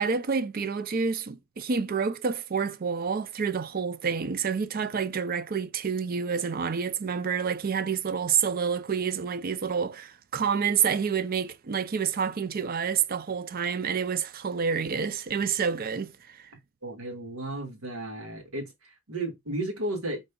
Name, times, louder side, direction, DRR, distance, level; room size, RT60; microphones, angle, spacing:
voice 1, 0.0-16.4, right 6 dB, 40° right, 0.4 m, -28 dB
voice 2, 16.8-20.2, right 1 dB, 80° right, 1.9 m, -34 dB
5.2 x 4.0 x 2.2 m
head